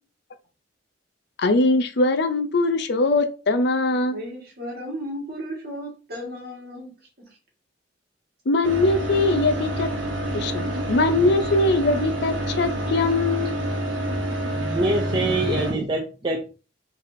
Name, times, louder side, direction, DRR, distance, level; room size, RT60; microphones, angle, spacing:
voice 1, 1.4-4.2 8.5-9.9 10.3-13.7, left 2 dB, 60° left, 0.5 m, -21 dB
voice 2, 4.1-6.9, equal, 55° right, 1.7 m, -34 dB
sound 1, 8.6-15.7, right 1 dB, 80° right, 1.1 m, -27 dB
voice 3, 14.5-16.5, right 1 dB, 25° right, 0.5 m, -25 dB
4.0 x 3.3 x 2.6 m
head